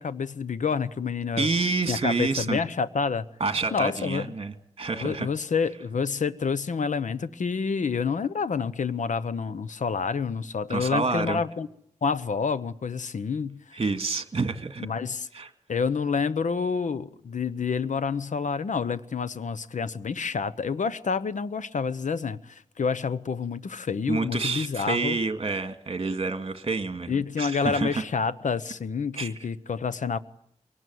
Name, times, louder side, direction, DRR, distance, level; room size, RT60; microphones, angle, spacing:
voice 1, 0.0-1.5 1.9-3.2 3.7-4.3 5.0-11.7 12.0-13.8 14.8-15.3 15.7-25.2 27.1-30.2, left 5 dB, 80° left, 0.9 m, -28 dB
voice 2, 1.4-2.6 3.4-5.3 10.7-11.4 13.7-14.9 15.3-15.5 24.1-28.0 29.1-29.3, right 4 dB, 50° right, 2.0 m, -28 dB
23.5 x 18.5 x 9.4 m
wide cardioid pair, 90°, 13 cm